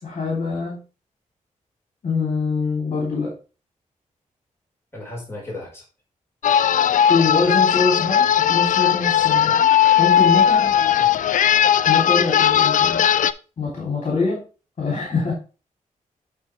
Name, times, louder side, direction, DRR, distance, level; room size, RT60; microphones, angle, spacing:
voice 1, 0.0-0.8 2.0-3.3 7.1-9.6 10.0-10.7 11.8-13.0 13.6-14.4 14.8-15.3, left 4 dB, 55° left, -2 dB, 3.3 m, -24 dB
voice 2, 4.9-5.8 9.5-9.6 11.0-11.1, left 2 dB, 15° left, -4 dB, 4.7 m, -35 dB
sound 1, 6.4-13.3, left 9 dB, 70° left, 0.4 m, -17 dB
10.5 x 4.3 x 3.4 m, 0.33 s
cardioid pair, 85°, 14 cm